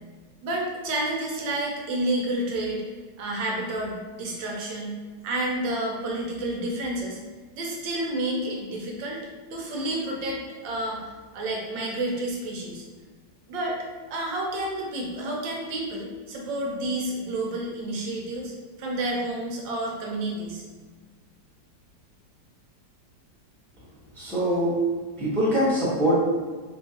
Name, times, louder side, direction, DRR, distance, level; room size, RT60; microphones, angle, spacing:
voice 1, 0.4-2.8 3.2-5.0 5.2-7.2 7.5-9.2 9.5-12.8 13.5-13.8 14.1-18.5 18.8-20.6, right 1 dB, 80° right, -1 dB, 1.4 m, -30 dB
voice 2, 24.1-24.9 25.2-26.1, equal, ahead, -9 dB, 0.6 m, -23 dB
3.5 x 3.0 x 2.8 m, 1.4 s
omnidirectional pair, 2.0 m